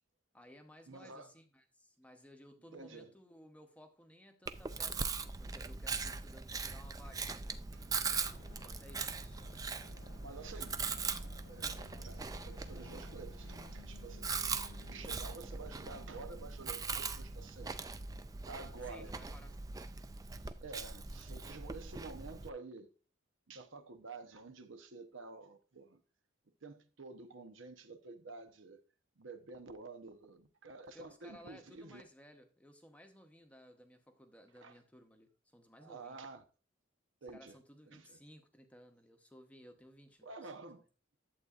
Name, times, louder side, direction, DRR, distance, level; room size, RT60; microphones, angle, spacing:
voice 1, 0.3-7.7 8.5-9.6 18.8-19.6 30.9-36.2 37.3-40.6, equal, 5° left, 0.8 m, -58 dB
voice 2, 0.9-1.3 2.7-3.1 7.7-8.2 9.1-9.7 10.2-11.1 11.4-17.7 18.4-19.4 20.4-22.9 23.5-26.0 26.6-28.8 29.2-32.0 34.6-34.7 35.8-36.4 37.2-37.6 37.9-38.2 40.2-40.9, right 3 dB, 70° right, 0.9 m, -50 dB
Chewing mastication, 4.5-22.5, right 5 dB, 15° right, 0.3 m, -41 dB
sound 1, 7.7-16.9, left 4 dB, 70° left, 0.5 m, -58 dB
11.0 x 7.9 x 2.4 m
head